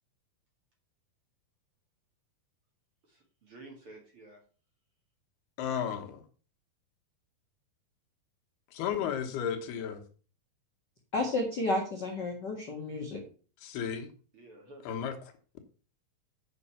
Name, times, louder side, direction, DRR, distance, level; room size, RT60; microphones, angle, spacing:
voice 1, 3.0-4.4 14.3-15.1, right 2 dB, 40° right, 0 dB, 2.3 m, -52 dB
voice 2, 5.6-6.2 8.7-10.0 13.6-14.1 14.9-15.1, left 8 dB, 85° left, 5 dB, 3.2 m, -33 dB
voice 3, 11.1-13.2, left 2 dB, 45° left, 0 dB, 1.4 m, -31 dB
8.3 x 6.8 x 5.6 m, 0.39 s
omnidirectional pair, 4.5 m